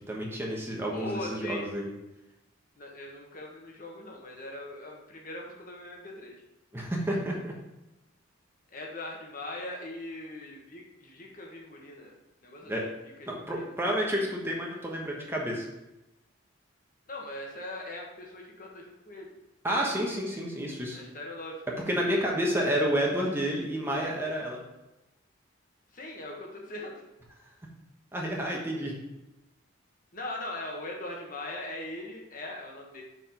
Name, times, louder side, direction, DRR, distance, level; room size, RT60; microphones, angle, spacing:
voice 1, 0.1-1.9 6.7-7.5 12.6-12.8 13.3-15.7 19.6-21.0 21.8-24.6 28.1-28.9, equal, 10° right, -2 dB, 1.1 m, -30 dB
voice 2, 0.9-1.6 2.8-6.4 8.7-12.1 12.4-12.7 13.2-13.7 17.1-19.3 20.9-21.6 25.9-27.0 30.1-33.0, left 1 dB, 40° left, -1 dB, 1.4 m, -40 dB
5.9 x 4.7 x 5.7 m, 0.97 s
head